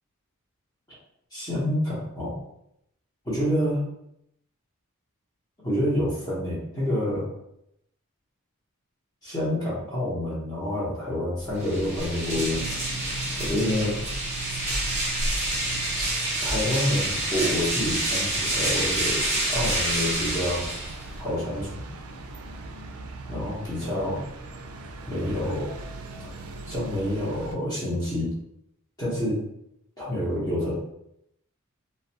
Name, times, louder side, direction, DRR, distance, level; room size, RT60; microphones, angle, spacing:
voice 1, 1.3-2.4 3.2-3.8 5.6-7.3 9.2-12.6 13.4-14.0 14.5-14.6 15.9-20.7 21.2-21.8 23.3-24.2 25.1-25.7 26.6-28.3 29.0-29.4 30.0-30.7, left 1 dB, 20° left, -8 dB, 0.7 m, -28 dB
sound 1, 11.5-21.2, right 1 dB, 30° right, 0.8 m, -28 dB
sound 2, 12.3-27.5, right 2 dB, 75° right, 0.3 m, -39 dB
2.4 x 2.1 x 2.7 m, 0.78 s
head